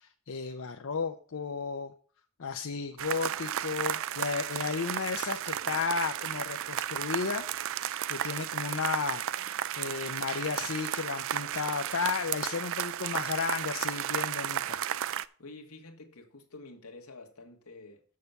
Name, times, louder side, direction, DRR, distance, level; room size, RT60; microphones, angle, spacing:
voice 1, 0.0-1.9 2.4-7.5 7.8-9.2 9.7-14.8, left 5 dB, 65° left, 0.6 m, -33 dB
sound 1, 3.0-15.3, right 10 dB, 65° right, 0.4 m, -34 dB
voice 2, 5.5-5.8 15.4-18.0, left 2 dB, 85° left, 1.6 m, -49 dB
6.7 x 6.7 x 6.9 m
head